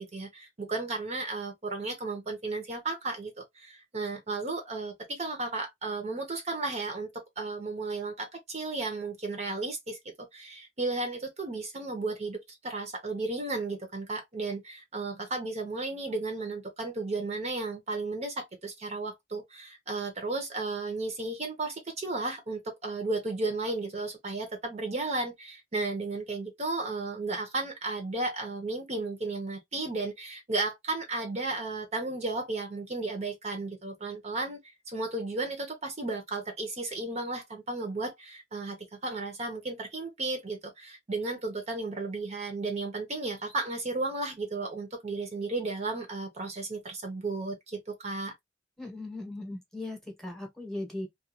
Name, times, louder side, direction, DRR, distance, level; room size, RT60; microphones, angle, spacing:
voice 1, 0.0-10.0 10.3-34.6 34.9-48.3, right 3 dB, 40° right, 0.7 m, -34 dB
voice 2, 48.8-51.1, left 2 dB, 5° left, 0.9 m, -38 dB
2.3 x 2.3 x 2.8 m
head